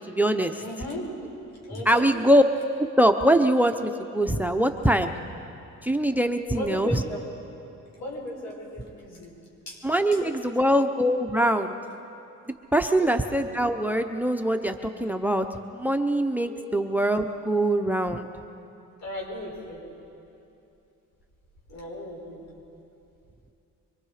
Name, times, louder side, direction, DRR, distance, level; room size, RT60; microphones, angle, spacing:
voice 1, 0.1-0.6 1.7-2.4 2.8-5.1 5.8-7.0 9.8-11.7 12.7-15.5 15.7-18.3, right 1 dB, 5° right, 8 dB, 0.8 m, -23 dB
voice 2, 0.6-1.0 1.7-2.1 6.5-7.3 7.9-9.3 9.7-9.8 10.2-10.5 12.8-13.1 16.4-16.6 19.0-19.8 21.7-22.4, left 1 dB, 65° left, -1 dB, 6.1 m, -36 dB
25.0 x 22.5 x 5.0 m, 2.7 s
cardioid pair, 90°, 30 cm